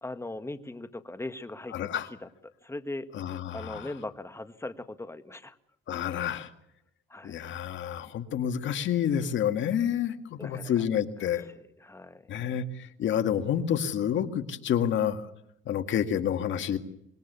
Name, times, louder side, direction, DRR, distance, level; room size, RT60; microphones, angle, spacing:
voice 1, 0.0-2.3 2.6-3.1 3.5-5.6 7.1-7.4 10.4-10.9 11.2-11.3 11.8-12.2, left 2 dB, 15° left, 9 dB, 1.8 m, -39 dB
voice 2, 1.7-2.1 3.1-3.9 5.9-6.5 7.2-11.5 12.3-15.3 15.7-16.8, left 9 dB, 75° left, 7 dB, 2.1 m, -29 dB
26.0 x 21.0 x 7.0 m, 0.76 s
cardioid pair, 90°, 20 cm